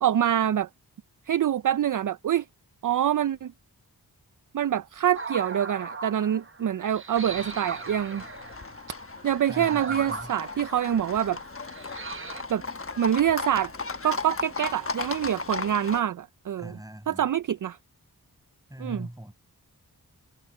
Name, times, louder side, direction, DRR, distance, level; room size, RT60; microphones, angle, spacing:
voice 1, 0.0-0.7 1.3-2.5 2.8-3.5 4.5-8.2 9.2-11.4 12.5-12.6 12.9-13.7 14.0-16.8 17.1-17.8 18.8-19.1, right 10 dB, 55° right, 0.5 m, -25 dB
sound 1, 5.1-12.4, right 4 dB, 30° right, 1.1 m, -39 dB
Livestock farm animals working animals, 7.2-16.0, left 3 dB, 35° left, 1.1 m, -36 dB
voice 2, 9.5-10.3 16.6-17.2 18.7-19.3, right 1 dB, 10° right, 6.2 m, -40 dB
cardioid pair, 55°, 39 cm